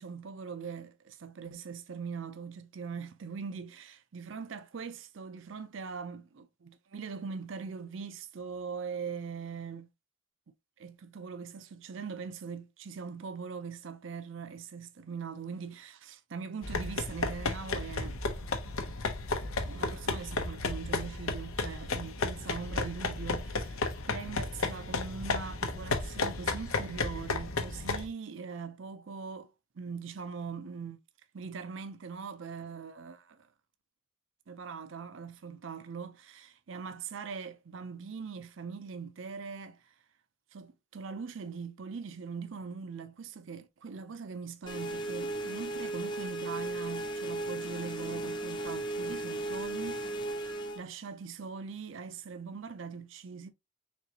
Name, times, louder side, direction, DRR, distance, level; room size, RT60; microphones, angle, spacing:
voice 1, 0.0-9.9 10.8-18.2 19.6-23.8 24.1-29.5 29.8-31.0 31.3-33.5 34.5-39.9 40.5-50.2 50.7-53.5, right 5 dB, 65° right, 0.5 m, -41 dB
sound 1, 16.6-28.1, left 3 dB, 85° left, 0.8 m, -33 dB
sound 2, 44.7-50.8, right 2 dB, 20° left, 0.6 m, -36 dB
4.2 x 3.3 x 2.8 m
head